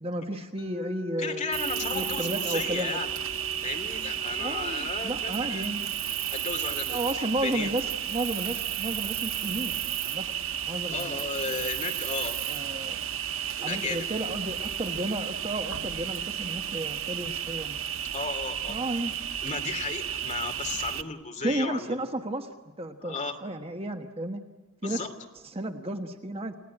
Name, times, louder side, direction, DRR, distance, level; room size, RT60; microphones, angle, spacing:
voice 1, 0.0-1.4 1.9-3.0 4.4-5.8 6.9-10.3 10.7-11.2 11.5-11.7 12.5-13.0 13.6-17.8 18.7-19.1 21.4-24.4 24.8-25.0 25.5-26.5, right 1 dB, 30° right, 5 dB, 1.2 m, -33 dB
Mallet percussion, 0.6-6.4, left 5 dB, 90° left, 5.8 m, -43 dB
voice 2, 1.2-3.1 3.6-5.7 6.0-7.7 10.8-12.4 13.6-14.1 18.1-18.8 19.4-22.0 23.0-23.4 24.8-25.1, left 4 dB, 35° left, 5 dB, 2.7 m, -35 dB
Cricket, 1.5-21.0, right 10 dB, 75° right, 1.1 m, -32 dB
29.5 x 17.5 x 9.9 m, 1.1 s
head